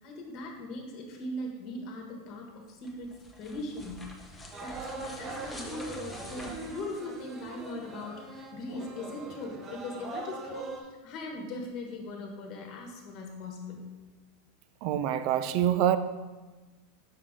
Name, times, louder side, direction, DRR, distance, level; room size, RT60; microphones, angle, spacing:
voice 1, 0.0-13.9, left 2 dB, 45° left, 1.3 m, -40 dB
sound 1, 2.7-7.7, left 1 dB, 10° left, 0.8 m, -47 dB
sound 2, 4.5-10.8, right 3 dB, 30° right, 0.8 m, -41 dB
voice 2, 14.8-16.0, right 11 dB, 55° right, 0.4 m, -25 dB
5.6 x 5.0 x 3.7 m
supercardioid pair, 130°, 0 cm